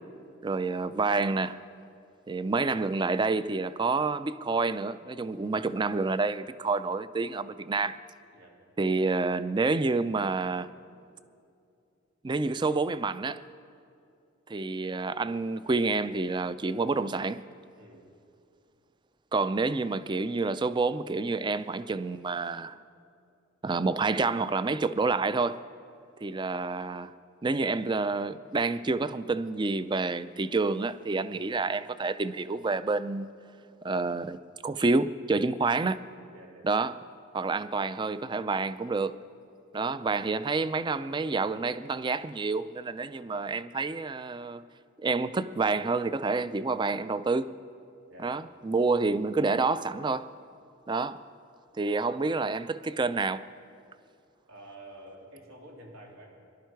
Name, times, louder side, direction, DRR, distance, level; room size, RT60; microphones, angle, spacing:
voice 1, 0.4-1.6 2.3-8.0 8.8-10.7 12.2-13.4 14.5-17.4 19.3-22.8 23.6-25.6 26.2-27.1 27.4-33.3 33.8-36.0 36.6-37.0 37.3-39.2 39.7-44.6 45.0-47.5 48.2-50.3 50.9-51.2 51.8-53.5, right 3 dB, 25° right, 0.4 m, -28 dB
voice 2, 36.3-36.7 48.1-48.3 54.5-56.3, right 1 dB, 80° right, 3.3 m, -49 dB
23.5 x 11.5 x 4.6 m
head